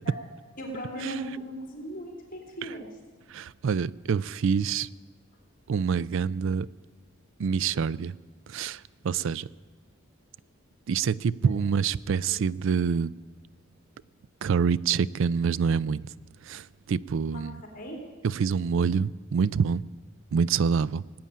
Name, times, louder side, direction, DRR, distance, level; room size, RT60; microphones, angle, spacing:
voice 1, 0.6-2.9 12.3-12.5 17.3-17.4 17.7-18.0, right 1 dB, 45° left, 3.2 m, -37 dB
voice 2, 3.3-4.9 5.7-6.7 7.4-8.1 8.5-9.5 10.9-13.1 14.4-16.1 16.4-17.6 18.2-19.9 20.3-21.0, right 6 dB, 65° right, 0.4 m, -26 dB
18.5 x 8.8 x 8.5 m
head